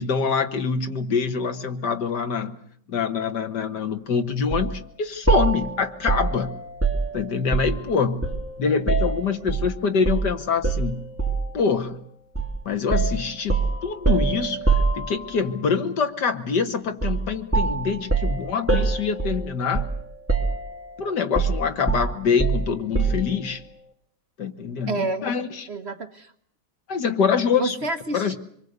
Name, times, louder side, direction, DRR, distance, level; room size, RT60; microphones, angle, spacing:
voice 1, 0.0-2.6 2.9-6.5 7.1-8.2 8.6-11.0 11.5-12.0 12.7-19.9 21.0-23.6 24.4-25.0 25.2-25.7 26.9-27.8 28.1-28.4, left 6 dB, 70° left, 8 dB, 2.1 m, -25 dB
sound 1, 4.5-4.7 5.3-7.9 8.2-9.7 10.1-10.3 10.6-11.5 12.4-12.6 12.9-15.5 17.0-17.3 17.5-20.0 20.3-20.9 21.4-23.3, right 4 dB, 5° right, 2.7 m, -24 dB
voice 2, 24.9-25.2 25.7-26.3 27.5-28.4, right 2 dB, 40° right, 6 dB, 1.4 m, -29 dB
25.5 x 23.0 x 8.1 m, 0.66 s
omnidirectional pair, 1.9 m